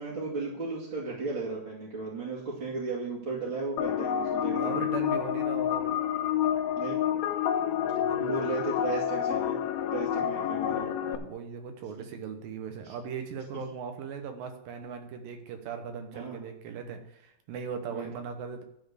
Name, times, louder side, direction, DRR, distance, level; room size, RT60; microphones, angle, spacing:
voice 1, 0.0-4.9 6.8-7.0 8.2-9.6 9.9-10.9 12.8-12.9 16.1-16.5 17.9-18.1, right 3 dB, 35° right, -7 dB, 2.5 m, -35 dB
sound 1, 3.8-11.2, left 10 dB, 75° left, 2.4 m, -29 dB
voice 2, 4.5-6.0 7.7-8.6 10.2-18.6, right 6 dB, 70° right, 6 dB, 2.7 m, -39 dB
12.0 x 4.5 x 8.1 m, 0.77 s
omnidirectional pair, 4.5 m